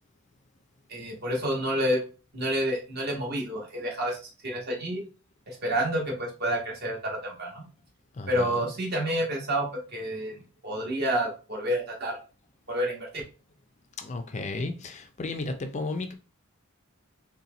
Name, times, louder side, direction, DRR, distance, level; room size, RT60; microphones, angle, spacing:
voice 1, 0.9-2.0 2.3-4.2 4.4-5.0 5.5-7.6 8.3-10.4 10.6-12.2 12.7-13.1, equal, 50° right, 1.3 m, -29 dB
voice 2, 8.1-8.7 14.0-16.1, left 3 dB, 35° left, 0.4 m, -34 dB
4.2 x 2.2 x 3.8 m
head